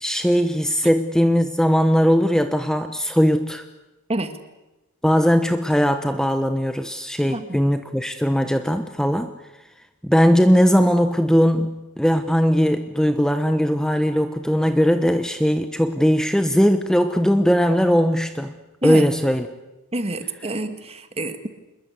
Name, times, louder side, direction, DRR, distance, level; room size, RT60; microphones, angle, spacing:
voice 1, 0.0-3.6 5.0-9.3 10.0-18.5 18.8-19.5, equal, 5° left, 8 dB, 1.0 m, -19 dB
voice 2, 19.9-21.5, right 1 dB, 25° right, 9 dB, 1.9 m, -27 dB
26.5 x 21.5 x 8.2 m, 1.1 s
head